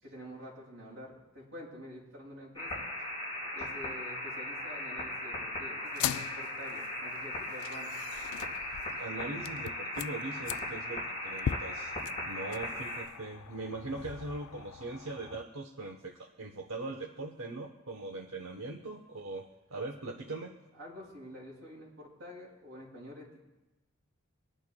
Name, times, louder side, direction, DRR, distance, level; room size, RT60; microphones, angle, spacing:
voice 1, 0.0-2.9 3.5-8.0 12.5-12.8 20.0-20.1 20.7-23.4, equal, 55° right, -5 dB, 5.3 m, -48 dB
sound 1, 2.5-13.0, left 1 dB, 25° left, 4.0 m, -38 dB
sound 2, 5.9-15.4, left 10 dB, 90° left, 0.3 m, -41 dB
voice 2, 9.0-11.9 12.3-20.6, right 2 dB, 80° right, 2 dB, 0.9 m, -41 dB
25.0 x 11.0 x 2.2 m, 1.1 s
head